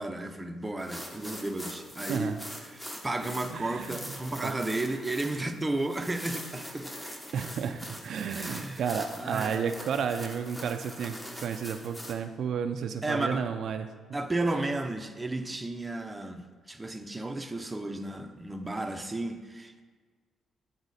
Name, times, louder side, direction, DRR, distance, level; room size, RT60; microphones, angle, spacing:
voice 1, 0.0-2.4 2.6-6.9 8.4-8.8 9.2-9.7 13.0-13.5 14.1-19.8, right 2 dB, 15° right, 5 dB, 0.5 m, -33 dB
sound 1, 0.8-12.1, equal, 10° left, 0.9 m, -43 dB
voice 2, 2.1-2.4 3.5-4.0 4.4-4.5 7.3-13.9 14.5-14.7, right 7 dB, 65° right, 7 dB, 0.3 m, -32 dB
8.0 x 4.0 x 4.1 m, 1.5 s
cardioid pair, 90°, 0 cm